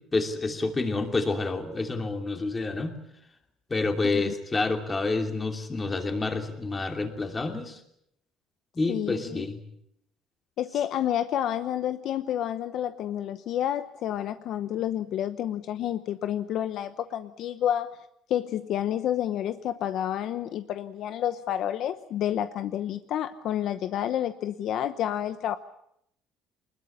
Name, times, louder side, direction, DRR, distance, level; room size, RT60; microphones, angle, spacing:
voice 1, 0.1-2.9 3.7-7.8 8.7-9.6, left 3 dB, 15° left, 5 dB, 2.8 m, -28 dB
voice 2, 8.9-9.4 10.6-17.9 18.3-25.6, left 11 dB, 55° left, 11 dB, 0.9 m, -29 dB
24.0 x 21.0 x 8.6 m, 0.74 s
cardioid pair, 160°, 0 cm